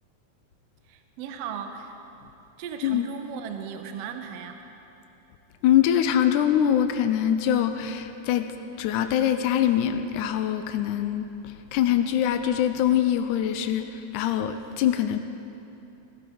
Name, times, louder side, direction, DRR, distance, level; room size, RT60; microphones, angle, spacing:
voice 1, 0.9-2.0 2.6-4.6, right 7 dB, 65° right, 5 dB, 1.8 m, -36 dB
voice 2, 5.6-8.5 8.8-15.2, left 10 dB, 90° left, 8 dB, 2.1 m, -23 dB
17.0 x 16.5 x 5.0 m, 2.9 s
omnidirectional pair, 3.5 m